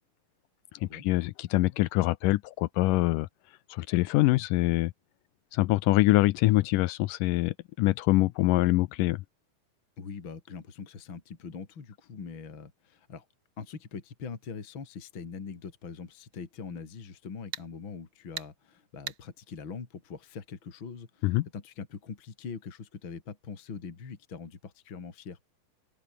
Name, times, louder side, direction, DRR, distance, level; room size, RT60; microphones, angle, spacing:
voice 1, 0.8-3.3 3.7-4.9 5.5-9.2 21.2-21.5, left 19 dB, 80° left, 2.0 m, -24 dB
voice 2, 10.0-13.3 13.6-25.4, left 5 dB, 35° left, 3.4 m, -42 dB
sound 1, 16.3-16.4 17.5-17.7 18.4-18.5 19.1-19.2, right 8 dB, 50° right, 1.8 m, -37 dB
open air
omnidirectional pair, 4.2 m